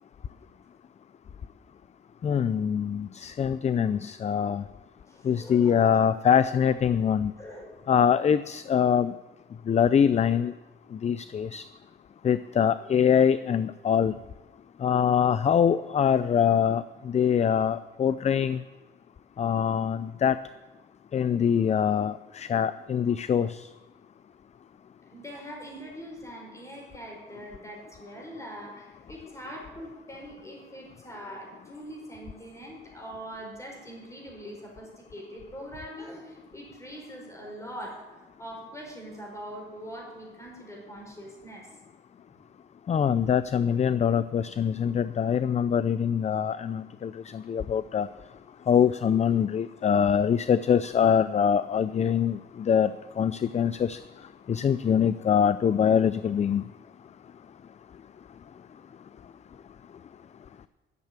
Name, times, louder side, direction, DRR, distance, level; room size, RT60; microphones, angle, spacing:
voice 1, 2.2-4.6 5.2-7.3 7.9-9.1 9.7-10.5 10.9-11.6 12.2-14.1 14.8-18.6 19.4-20.4 21.1-23.7 42.9-48.1 48.7-54.0 54.5-56.6, left 8 dB, 35° left, 15 dB, 0.4 m, -24 dB
voice 2, 5.1-6.1 6.4-6.5 7.4-7.7 25.1-41.7, equal, 15° left, 0 dB, 5.1 m, -42 dB
12.0 x 7.3 x 8.9 m, 1.2 s
cardioid pair, 90°, 20 cm